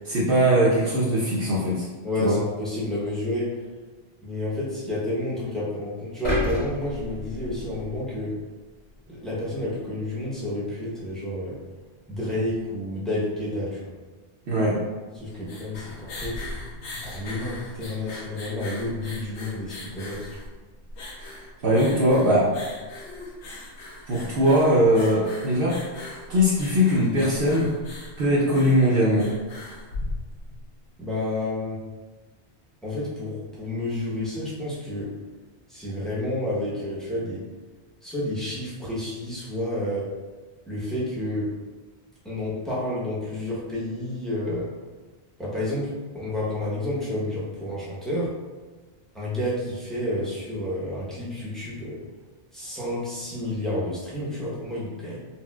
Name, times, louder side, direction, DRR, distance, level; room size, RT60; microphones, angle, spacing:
voice 1, 0.0-1.9 2.2-2.4 14.5-14.8 21.2-22.5 24.1-25.8 26.3-27.7 28.2-29.3, equal, 60° right, -6 dB, 0.8 m, -21 dB
voice 2, 2.0-3.6 4.2-8.4 9.1-11.6 12.1-14.0 15.1-16.5 17.0-20.4 31.0-31.8 32.8-35.1 35.7-37.5 38.0-40.1 40.7-41.5 42.2-44.7 45.4-48.3 49.1-52.0 52.5-55.2, left 1 dB, ahead, -8 dB, 0.7 m, -30 dB
sound 1, 6.2-8.4 8.9-9.0, left 1 dB, 40° left, 1.4 m, -31 dB
sound 2, 15.3-30.6, left 2 dB, 85° left, 1.0 m, -39 dB
4.2 x 2.1 x 2.2 m, 1.3 s
omnidirectional pair, 1.2 m